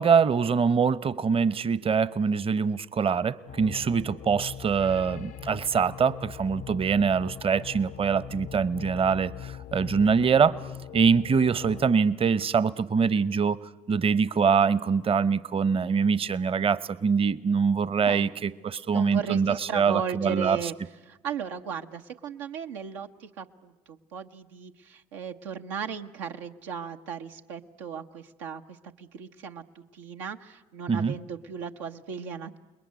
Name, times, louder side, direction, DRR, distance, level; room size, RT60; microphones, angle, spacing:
voice 1, 0.0-10.6 10.9-13.6 13.9-20.6 30.9-31.1, right 6 dB, 40° right, 18 dB, 0.9 m, -24 dB
sound 1, 3.5-11.9, left 10 dB, 60° left, 0.8 m, -41 dB
voice 2, 18.9-20.8 21.1-32.6, right 7 dB, 90° right, 4 dB, 0.9 m, -36 dB
29.5 x 20.5 x 9.5 m, 1.2 s
hypercardioid pair, 55°, 15 cm